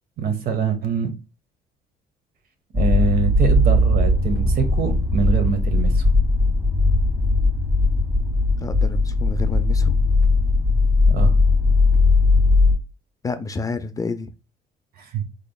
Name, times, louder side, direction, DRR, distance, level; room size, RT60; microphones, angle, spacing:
voice 1, 0.2-1.1 2.7-6.0 11.1-11.4 15.0-15.2, right 6 dB, 60° right, 0.9 m, -24 dB
sound 1, 2.7-12.8, left 2 dB, 15° right, 1.7 m, -18 dB
voice 2, 8.6-9.9 13.2-14.3, left 4 dB, 20° left, 0.3 m, -29 dB
3.9 x 3.3 x 2.2 m
cardioid pair, 110°, 17 cm